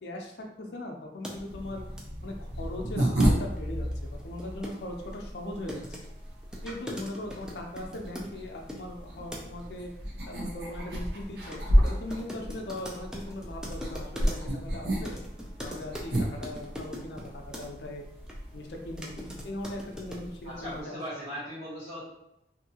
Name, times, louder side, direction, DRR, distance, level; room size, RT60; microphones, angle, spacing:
voice 1, 0.0-1.8 2.2-5.8 6.6-9.9 10.2-15.2 15.6-18.0 18.5-21.0, left 1 dB, 75° left, 2 dB, 0.5 m, -39 dB
sound 1, 1.2-1.4 2.0-2.1 3.2-3.3 3.6-3.7 3.9-8.8 9.3-9.6 11.5-11.6 11.9-14.6 15.0-17.7 18.3-18.4 18.8-20.3, equal, 5° right, 0.3 m, -41 dB
sound 2, 1.3-20.8, equal, 70° right, 0.7 m, -32 dB
voice 2, 20.4-22.0, equal, 40° right, -9 dB, 1.3 m, -38 dB
2.8 x 2.6 x 2.8 m, 0.85 s
head